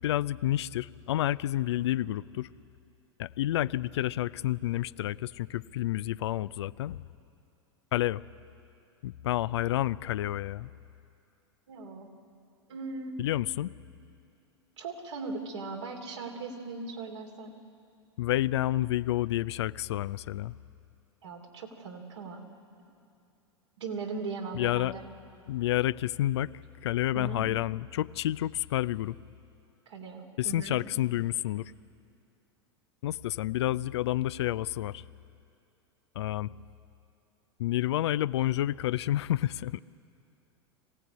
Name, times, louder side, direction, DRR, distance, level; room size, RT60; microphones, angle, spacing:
voice 1, 0.0-2.5 3.2-7.0 7.9-8.2 9.0-10.7 13.2-13.7 18.2-20.6 24.5-24.9 25.5-26.5 26.8-29.2 30.4-31.7 33.0-35.0 36.2-36.5 37.6-39.8, left 14 dB, 70° left, 18 dB, 0.5 m, -29 dB
voice 2, 11.7-12.1 12.7-13.2 14.8-17.5 21.2-22.4 23.8-25.0 27.1-27.4 29.9-30.8, right 4 dB, 75° right, 2 dB, 2.9 m, -39 dB
24.5 x 16.5 x 9.6 m, 2.5 s
hypercardioid pair, 90°, 15 cm